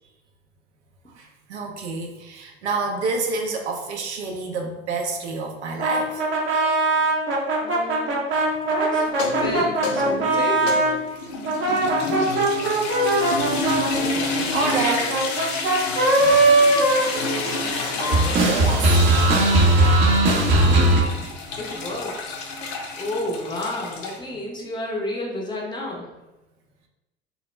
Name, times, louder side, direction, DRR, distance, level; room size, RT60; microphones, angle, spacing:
voice 1, 1.1-6.2 14.5-15.2 16.1-17.0 18.4-19.0, right 3 dB, 85° right, 1 dB, 0.5 m, -29 dB
sound 1, 5.8-11.0 11.4-17.7 18.0-21.0, right 2 dB, 35° right, 0.6 m, -20 dB
voice 2, 7.6-8.2 8.7-9.1 9.4-10.6 20.6-21.3 21.6-22.2 23.0-26.1, left 1 dB, 15° left, -2 dB, 0.6 m, -31 dB
sound 2, 9.1-24.2, left 2 dB, 65° left, 0.6 m, -29 dB
2.2 x 2.1 x 3.1 m, 1.0 s
hypercardioid pair, 85°, 33 cm